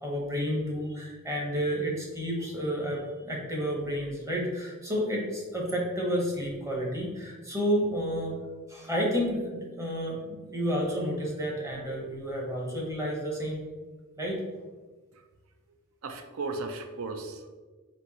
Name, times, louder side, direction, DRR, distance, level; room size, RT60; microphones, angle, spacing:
voice 1, 0.0-8.4 8.7-13.6 14.2-14.4, equal, 15° right, -2 dB, 0.9 m, -30 dB
voice 2, 16.0-17.5, right 3 dB, 70° right, 6 dB, 0.4 m, -36 dB
4.4 x 2.6 x 4.0 m, 1.3 s
head